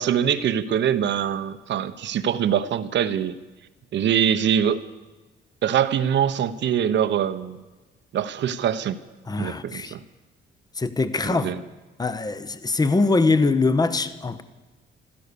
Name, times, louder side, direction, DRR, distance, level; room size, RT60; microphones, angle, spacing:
voice 1, 0.0-3.4 3.9-4.8 5.6-7.6 8.1-9.0 9.4-10.0 11.3-11.6, right 9 dB, 65° right, 0.9 m, -23 dB
voice 2, 9.3-9.9 10.8-11.5 12.0-14.4, left 3 dB, 20° left, 0.9 m, -22 dB
15.5 x 13.0 x 6.9 m
cardioid pair, 90°, 20 cm